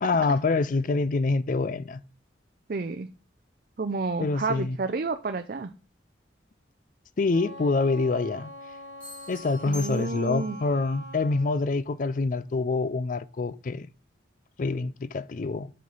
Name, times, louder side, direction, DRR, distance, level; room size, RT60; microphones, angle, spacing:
voice 1, 0.0-2.0 4.2-4.8 7.2-8.5 9.3-13.9 14.6-15.7, left 3 dB, 45° left, 0.4 m, -26 dB
voice 2, 2.7-3.1 3.8-5.7 9.6-10.6, right 4 dB, 50° right, 0.5 m, -30 dB
Wind instrument woodwind instrument, 7.3-11.6, left 1 dB, 70° left, 0.8 m, -43 dB
sound 1, 9.0-10.6, left 3 dB, 5° left, 2.5 m, -45 dB
7.6 x 5.7 x 4.0 m
head